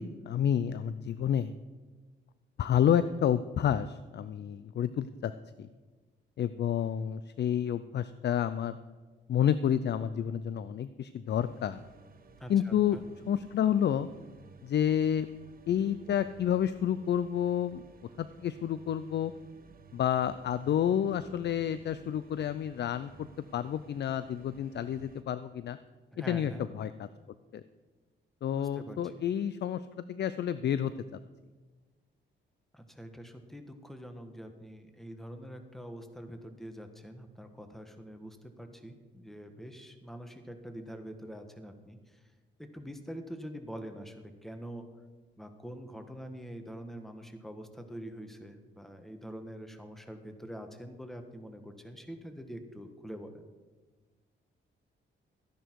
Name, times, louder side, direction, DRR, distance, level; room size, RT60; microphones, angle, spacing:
voice 1, 0.0-1.5 2.6-5.3 5.6-5.7 6.4-8.8 9.3-11.8 12.5-13.0 13.3-14.1 14.6-15.3 15.7-17.8 18.2-19.3 19.9-23.3 23.5-25.8 26.2-26.9 27.5-27.6 28.4-30.9, left 9 dB, 60° left, 14 dB, 0.5 m, -29 dB
sound 1, 11.3-25.2, right 4 dB, 45° right, 1.1 m, -56 dB
voice 2, 12.4-13.0 26.1-26.6 28.5-29.2 32.7-42.2 42.6-44.8 45.4-53.4, equal, ahead, 6 dB, 1.4 m, -45 dB
14.5 x 10.0 x 4.7 m, 1.4 s
cardioid pair, 105°, 20 cm